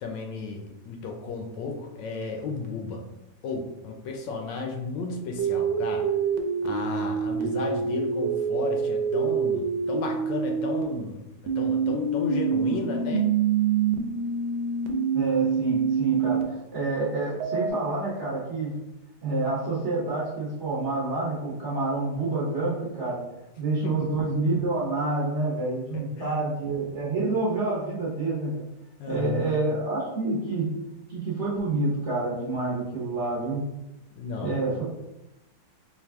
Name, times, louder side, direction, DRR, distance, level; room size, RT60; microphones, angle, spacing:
voice 1, 0.0-3.0 3.4-6.1 6.6-11.2 11.6-13.2 23.8-24.1 25.9-26.4 29.0-29.6 34.2-34.6, left 3 dB, 75° left, 2 dB, 1.1 m, -33 dB
sound 1, 5.4-10.8 11.5-16.4 17.4-17.7, right 6 dB, 80° right, 1.3 m, -26 dB
voice 2, 15.1-18.7 19.2-23.2 23.6-28.5 29.1-30.7 31.1-33.6 34.4-34.8, right 3 dB, 50° right, -7 dB, 1.0 m, -28 dB
4.1 x 2.4 x 3.4 m, 0.93 s
omnidirectional pair, 2.1 m